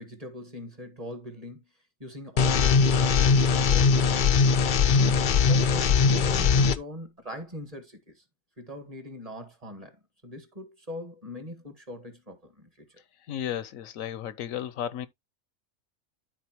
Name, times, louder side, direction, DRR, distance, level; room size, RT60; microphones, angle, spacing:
voice 1, 0.0-1.6 2.0-4.3 4.9-8.2 8.6-13.0, left 1 dB, 25° right, 1.7 m, -41 dB
sound 1, 2.4-6.8, left 5 dB, 55° left, 0.6 m, -21 dB
voice 2, 13.3-15.1, left 10 dB, 80° left, 1.1 m, -33 dB
12.5 x 4.3 x 2.9 m
omnidirectional pair, 1.4 m